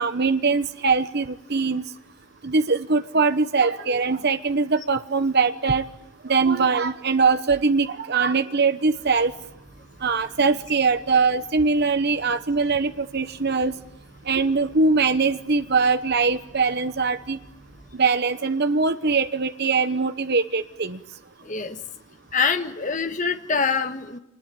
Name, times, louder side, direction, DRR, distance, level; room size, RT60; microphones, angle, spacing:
voice 1, 0.0-1.8 2.4-5.8 6.2-9.3 10.0-13.7 14.3-17.4 17.9-21.0, right 4 dB, 50° right, 10 dB, 1.0 m, -22 dB
sound 1, 8.8-18.0, right 1 dB, 5° left, 6.5 m, -51 dB
voice 2, 21.4-21.8 22.3-24.2, left 5 dB, 35° left, 7 dB, 1.5 m, -25 dB
27.0 x 20.5 x 9.2 m, 0.84 s
head